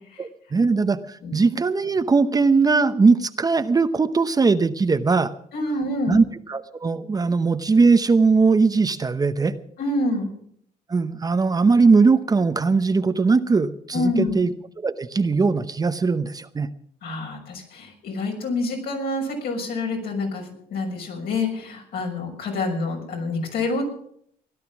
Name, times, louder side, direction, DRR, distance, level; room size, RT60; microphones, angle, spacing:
voice 1, 0.2-5.3 6.1-9.5 10.9-14.5 14.8-16.7, right 4 dB, 20° right, 10 dB, 0.8 m, -20 dB
voice 2, 5.5-6.2 9.8-10.3 13.9-14.3 17.0-23.8, left 2 dB, 70° left, 1 dB, 6.3 m, -27 dB
17.0 x 12.0 x 6.0 m, 0.67 s
cardioid pair, 110°, 17 cm